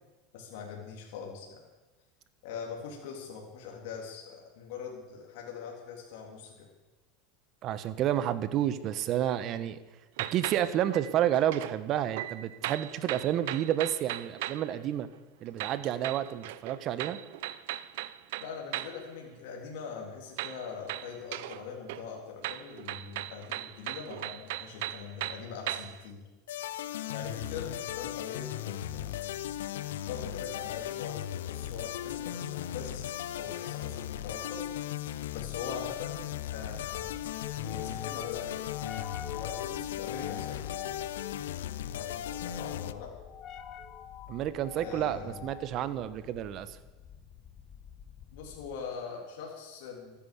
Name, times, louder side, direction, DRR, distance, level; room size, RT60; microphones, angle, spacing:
voice 1, 0.3-1.6 2.4-6.7 18.4-26.3 27.1-29.2 30.1-34.6 35.3-37.3 37.6-38.6 39.3-40.7 41.9-43.1 44.7-45.4 48.3-50.2, left 6 dB, 70° left, -1 dB, 3.3 m, -42 dB
voice 2, 7.6-9.8 10.3-15.1 15.4-17.2 44.3-46.8, right 11 dB, 45° right, 14 dB, 1.2 m, -30 dB
sound 1, 10.2-11.8 12.1-14.7 15.6-19.1 20.4-21.6 21.9-26.1, right 15 dB, 75° right, 0.7 m, -38 dB
sound 2, 26.5-42.9, left 12 dB, 90° left, 0.6 m, -37 dB
sound 3, 35.7-48.9, left 8 dB, 40° left, 1.3 m, -46 dB
14.5 x 10.0 x 8.4 m, 1.2 s
supercardioid pair, 120°, 0 cm